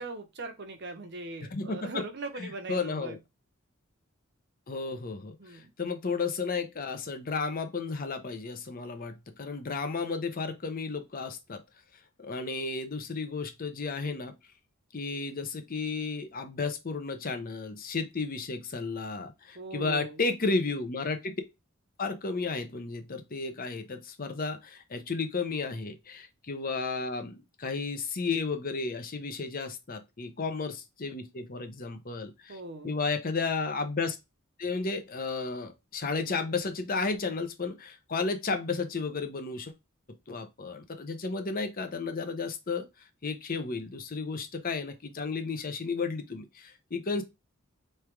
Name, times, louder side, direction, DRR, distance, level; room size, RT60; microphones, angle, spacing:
voice 1, 0.0-3.2 5.4-5.7 19.5-20.2 32.5-32.9, right 2 dB, 55° right, 0.9 m, -40 dB
voice 2, 1.5-2.0 2.4-3.2 4.7-11.6 12.2-14.3 14.9-21.4 22.0-32.6 32.8-34.2 34.6-39.7 40.3-42.9 43.2-47.2, left 4 dB, 40° left, 0.7 m, -33 dB
3.4 x 3.4 x 4.5 m
head